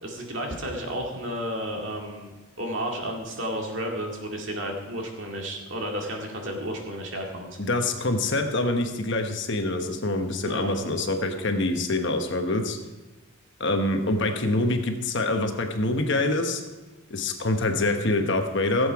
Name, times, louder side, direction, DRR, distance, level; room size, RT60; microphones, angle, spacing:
voice 1, 0.0-2.3 2.6-7.6 10.4-10.8, equal, 60° right, 1 dB, 2.2 m, -32 dB
voice 2, 7.6-12.8 13.6-16.6 17.1-18.9, left 2 dB, 55° left, 5 dB, 1.2 m, -25 dB
16.0 x 8.0 x 4.8 m, 1.1 s
head